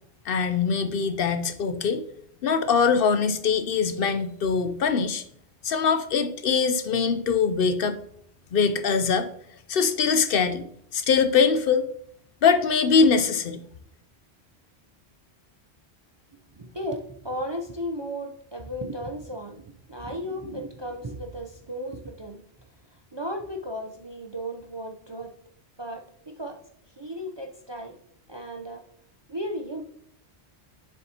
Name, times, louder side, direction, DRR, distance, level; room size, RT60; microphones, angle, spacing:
voice 1, 0.3-2.0 2.4-5.2 5.6-8.0 8.5-9.3 9.7-10.7 10.9-11.8 12.4-13.6, left 5 dB, 65° left, 11 dB, 0.7 m, -22 dB
voice 2, 16.5-22.4 22.9-25.3 25.8-26.6 27.0-28.0 28.3-28.8 29.3-29.8, equal, 35° right, 3 dB, 0.5 m, -35 dB
7.1 x 7.0 x 2.8 m, 0.69 s
omnidirectional pair, 1.1 m